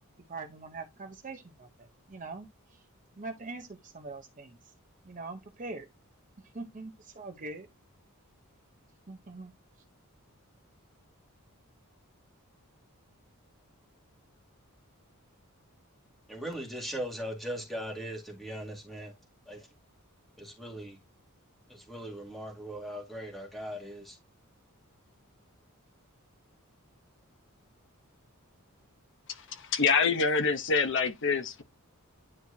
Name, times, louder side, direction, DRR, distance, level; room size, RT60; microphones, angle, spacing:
voice 1, 0.3-2.9 3.2-4.7 5.0-5.9 6.4-7.7 9.1-9.8, right 3 dB, 35° right, 0.8 m, -43 dB
voice 2, 16.3-19.1 19.5-19.7 20.4-21.0 21.7-24.2, equal, ahead, 2.0 m, -39 dB
voice 3, 29.3-31.6, left 5 dB, 55° left, 0.9 m, -26 dB
10.0 x 4.4 x 2.8 m
head